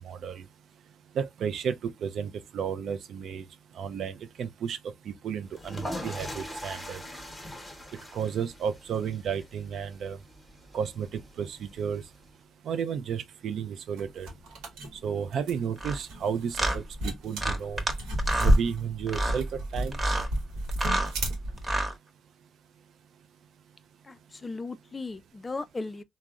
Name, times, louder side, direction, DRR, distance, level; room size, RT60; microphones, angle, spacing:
voice 1, 0.0-0.4 1.1-3.4 3.8-4.8 5.2-7.0 8.1-10.2 10.7-12.0 12.6-14.3 15.0-17.8 18.4-19.4 19.7-20.0, right 7 dB, 70° right, 0.4 m, -32 dB
sound 1, 5.5-12.3, left 1 dB, 10° left, 0.9 m, -42 dB
sound 2, 14.0-21.7, equal, 90° right, 0.9 m, -30 dB
sound 3, 15.8-16.0 16.5-16.8 17.4-17.9 18.2-18.6 19.1-19.4 19.9-20.3 20.7-21.1 21.6-21.9, right 1 dB, 25° right, 0.9 m, -28 dB
voice 2, 24.0-26.0, left 3 dB, 30° left, 0.3 m, -37 dB
3.4 x 2.0 x 2.3 m
supercardioid pair, 70°, 0 cm